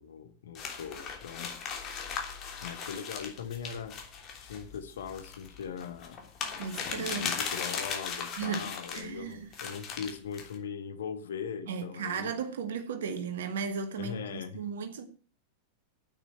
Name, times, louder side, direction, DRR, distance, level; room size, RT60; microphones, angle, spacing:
voice 1, 0.0-1.5 2.6-3.9 4.4-6.2 6.9-12.3 14.0-14.6, left 7 dB, 65° left, 1.7 m, -40 dB
sound 1, 0.6-9.1 9.5-10.6, left 6 dB, 35° left, 3.1 m, -38 dB
voice 2, 6.6-7.3 8.4-8.7 8.9-9.5 11.7-15.1, right 6 dB, 60° right, 2.1 m, -35 dB
9.8 x 8.9 x 9.0 m
figure-of-eight pair, 90°, 0 cm